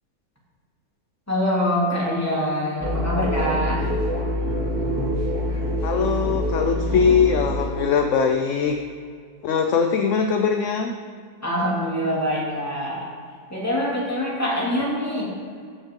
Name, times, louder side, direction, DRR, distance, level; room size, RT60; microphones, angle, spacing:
voice 1, 1.3-3.9 11.4-13.1 13.5-15.3, equal, 10° left, -6 dB, 2.8 m, -24 dB
sound 1, 2.8-7.9, equal, 15° right, 1.9 m, -25 dB
voice 2, 5.8-8.8 9.4-11.0, left 6 dB, 65° left, 5 dB, 0.9 m, -21 dB
14.0 x 7.2 x 3.7 m, 2.2 s
omnidirectional pair, 1.6 m